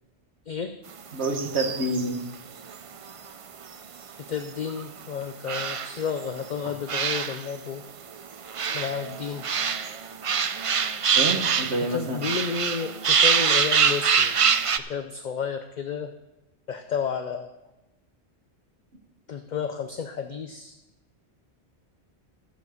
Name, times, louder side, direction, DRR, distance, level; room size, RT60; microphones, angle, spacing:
voice 1, 0.5-0.8 4.3-7.8 8.7-9.4 11.9-14.4 14.9-16.1 16.7-17.5 19.3-20.7, left 6 dB, 50° left, 7 dB, 0.7 m, -31 dB
voice 2, 1.1-2.2 6.7-6.8 11.1-12.2, right 2 dB, 80° right, 3 dB, 1.8 m, -27 dB
sound 1, 1.2-2.1 2.7-2.8 3.1-3.2 4.7-4.8 5.5-6.4 6.9-7.4 8.1-11.9 12.2-14.8, right 6 dB, 45° right, 0.4 m, -24 dB
12.5 x 7.3 x 6.6 m, 0.98 s
omnidirectional pair, 1.1 m